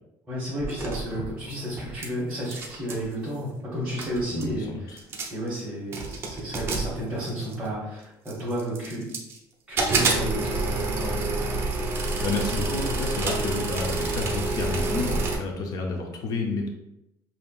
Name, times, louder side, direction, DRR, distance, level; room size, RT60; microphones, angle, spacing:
voice 1, 0.3-4.7 5.3-9.1 9.7-11.2, right 1 dB, 10° right, -10 dB, 1.2 m, -32 dB
sound 1, 0.6-2.1 2.3-3.1 3.7-3.8 4.0-4.5 5.0-5.5 5.9-7.7 8.3-9.4 9.8-15.4, right 3 dB, 30° right, 0.6 m, -28 dB
voice 2, 4.3-5.0 12.2-16.7, left 3 dB, 45° left, 2 dB, 0.6 m, -30 dB
5.3 x 2.7 x 2.3 m, 0.89 s
cardioid pair, 155°, 9 cm